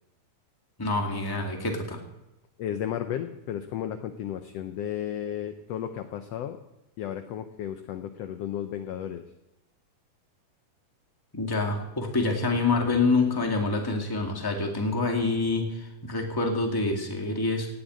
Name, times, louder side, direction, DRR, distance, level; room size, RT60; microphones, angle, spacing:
voice 1, 0.8-2.0 11.4-17.7, left 3 dB, 10° left, 2 dB, 1.6 m, -26 dB
voice 2, 2.6-6.6 7.0-9.2, left 10 dB, 75° left, 9 dB, 1.5 m, -33 dB
17.5 x 7.9 x 8.7 m, 0.92 s
omnidirectional pair, 3.6 m